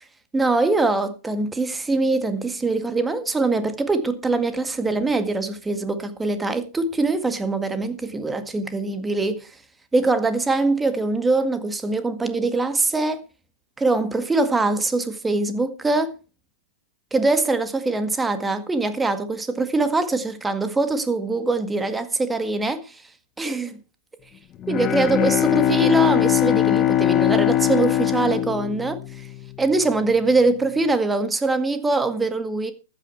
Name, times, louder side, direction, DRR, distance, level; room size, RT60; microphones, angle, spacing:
voice 1, 0.3-9.5 9.9-13.2 13.8-16.1 17.1-23.0 23.4-23.8 24.7-29.3 29.6-32.7, right 3 dB, 10° right, 1.8 m, -23 dB
Bowed string instrument, 24.6-29.5, left 12 dB, 30° left, 1.3 m, -21 dB
14.5 x 9.4 x 4.6 m
figure-of-eight pair, 105°, 0 cm